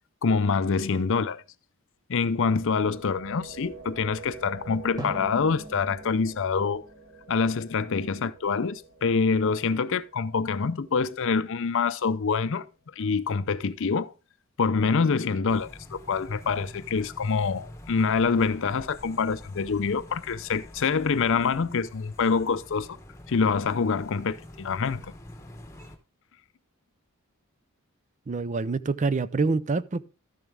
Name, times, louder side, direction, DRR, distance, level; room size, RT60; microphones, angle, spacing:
voice 1, 0.2-1.4 2.1-6.9 7.3-12.7 13.0-14.1 14.6-23.0 23.3-25.1, left 5 dB, 60° left, 0.5 m, -26 dB
sound 1, 2.3-12.2, right 4 dB, 60° right, 2.0 m, -48 dB
Drum, 5.0-7.9, right 1 dB, 15° right, 1.3 m, -42 dB
sound 2, 15.5-26.0, left 1 dB, 15° left, 1.1 m, -46 dB
voice 2, 28.3-30.0, right 4 dB, 35° right, 0.4 m, -26 dB
13.0 x 7.1 x 3.4 m
head